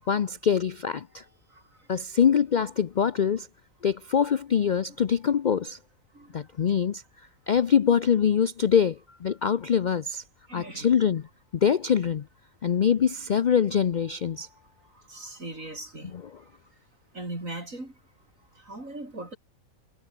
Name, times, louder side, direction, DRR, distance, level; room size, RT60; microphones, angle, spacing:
voice 1, 0.1-1.2 1.9-3.5 3.8-5.8 6.3-7.0 7.5-10.2 10.5-11.2 11.6-12.2 12.6-14.5, left 7 dB, 55° left, 0.5 m, -24 dB
voice 2, 1.5-1.9 6.1-6.4 6.7-6.8 10.5-10.9 14.9-16.5 17.1-17.9 18.5-19.4, right 2 dB, 70° right, 7.6 m, -40 dB
omnidirectional pair, 1.4 m